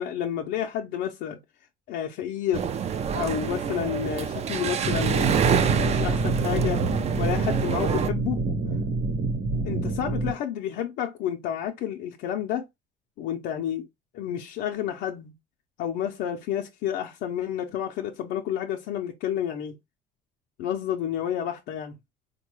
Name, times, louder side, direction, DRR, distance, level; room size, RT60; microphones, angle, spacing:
voice 1, 0.0-1.4 1.9-2.6 3.1-5.4 5.8-6.8 7.2-8.4 9.6-12.7 13.2-13.8 14.1-15.3 15.8-19.8 20.6-21.9, left 10 dB, 85° left, 0.5 m, -30 dB
sound 1, 2.5-8.1, right 7 dB, 40° right, 0.4 m, -27 dB
sound 2, 4.8-10.3, right 3 dB, 65° right, 0.9 m, -27 dB
3.8 x 2.2 x 3.0 m
cardioid pair, 110°, 17 cm